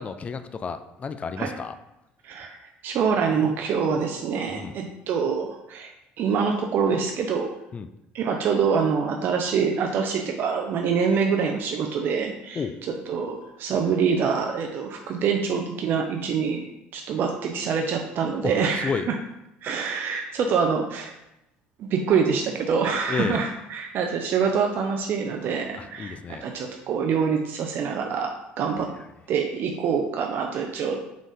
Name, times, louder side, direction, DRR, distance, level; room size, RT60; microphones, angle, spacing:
voice 1, 0.0-1.7 4.5-4.8 7.7-7.9 12.6-12.8 18.4-19.1 23.1-23.4 25.7-26.5, left 5 dB, 30° left, 10 dB, 0.3 m, -31 dB
voice 2, 2.2-2.6 2.8-5.9 6.2-7.5 8.1-12.6 13.1-16.7 16.9-19.2 19.6-21.1 21.8-28.3 28.6-28.9 29.3-31.0, right 6 dB, 55° right, 2 dB, 0.5 m, -25 dB
3.8 x 3.7 x 3.5 m, 0.87 s
supercardioid pair, 85°, 4 cm